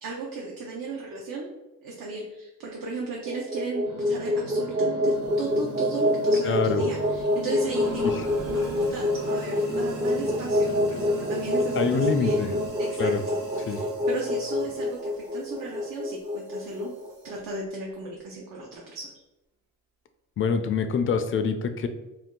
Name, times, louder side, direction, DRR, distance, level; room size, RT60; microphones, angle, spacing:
voice 1, 0.0-1.5 1.8-8.1 8.4-12.5 12.8-16.9 17.2-19.1, right 3 dB, 65° right, -2 dB, 0.7 m, -35 dB
sound 1, 3.1-17.4, left 1 dB, 20° right, 0.4 m, -26 dB
sound 2, 3.8-12.7, left 2 dB, 50° right, 1.0 m, -39 dB
Sink (filling or washing), 5.1-17.4, right 2 dB, 90° right, 1.0 m, -45 dB
voice 2, 6.5-6.8 11.7-12.5 13.0-13.2 13.7-13.8 20.4-21.9, left 5 dB, 35° left, 8 dB, 0.4 m, -25 dB
2.6 x 2.2 x 3.6 m, 1.0 s
cardioid pair, 75°, 36 cm